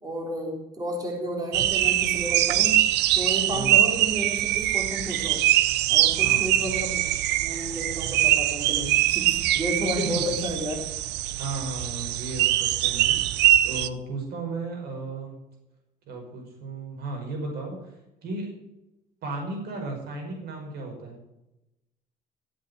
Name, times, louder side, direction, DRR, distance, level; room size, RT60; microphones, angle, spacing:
voice 1, 0.0-2.9 3.2-5.4 5.9-7.0 7.4-10.8, equal, 20° right, 1 dB, 3.9 m, -32 dB
sound 1, 1.5-13.9, right 13 dB, 85° right, 0.7 m, -23 dB
voice 2, 3.5-3.9 6.1-6.5 10.0-10.4 11.4-15.4 16.1-18.6 19.2-21.1, right 3 dB, 70° right, 1 dB, 5.6 m, -35 dB
15.0 x 8.7 x 8.2 m, 0.94 s
cardioid pair, 110°, 17 cm